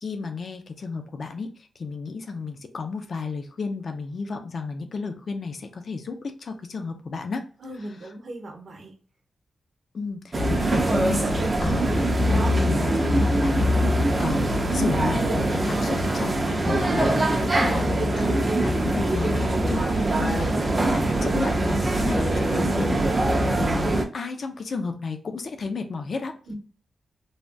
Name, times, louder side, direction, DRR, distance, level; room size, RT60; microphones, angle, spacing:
voice 1, 0.0-7.5 7.8-8.1 9.9-11.9 12.3-13.9 14.2-17.9 18.2-18.3 18.6-19.3 19.6-20.5 20.9-26.4, left 4 dB, 45° left, 6 dB, 0.4 m, -32 dB
voice 2, 7.6-8.9 26.5-26.6, right 1 dB, 50° right, 3 dB, 0.8 m, -39 dB
sound 1, 10.3-24.0, right 1 dB, 25° right, 0.5 m, -23 dB
3.3 x 2.2 x 2.5 m, 0.40 s
wide cardioid pair, 170°, 0 cm